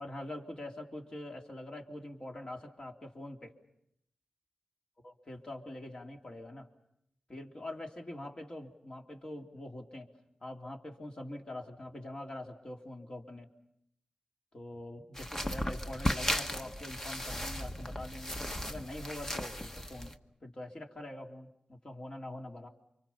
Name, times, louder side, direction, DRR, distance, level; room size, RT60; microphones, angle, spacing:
voice 1, 0.0-3.6 5.0-6.7 7.3-10.1 10.4-13.5 14.5-18.4 18.6-22.7, left 1 dB, 40° left, 1 dB, 3.2 m, -44 dB
sound 1, 15.2-20.2, left 1 dB, 20° left, 1.2 m, -36 dB
29.5 x 26.0 x 5.7 m, 0.77 s
wide cardioid pair, 80°, 2 cm